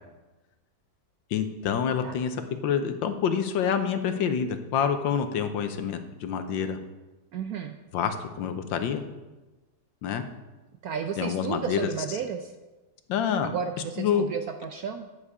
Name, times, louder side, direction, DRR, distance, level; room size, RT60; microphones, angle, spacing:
voice 1, 1.3-6.8 7.9-9.0 10.0-10.2 11.2-11.9 13.1-13.5 14.0-14.2, left 7 dB, 75° left, 8 dB, 1.5 m, -27 dB
voice 2, 7.3-7.7 10.8-12.5 13.4-15.1, right 7 dB, 70° right, 6 dB, 0.9 m, -33 dB
9.8 x 8.3 x 4.8 m, 1.1 s
omnidirectional pair, 2.1 m